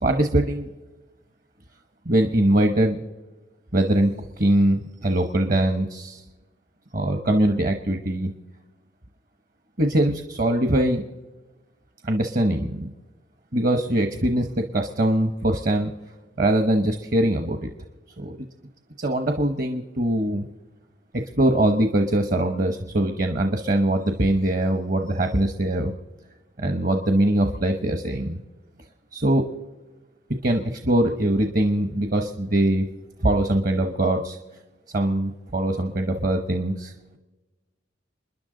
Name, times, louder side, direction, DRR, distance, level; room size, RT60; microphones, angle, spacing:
voice 1, 0.0-0.7 2.1-3.0 3.7-6.2 6.9-8.3 9.8-11.0 12.0-12.9 13.5-15.9 16.4-17.6 18.2-18.5 19.0-20.5 21.1-25.9 26.6-28.4 29.1-29.4 30.4-32.9 33.2-34.4 34.9-37.2, right 1 dB, 45° right, 6 dB, 1.0 m, -22 dB
28.5 x 10.5 x 3.9 m, 1.2 s
head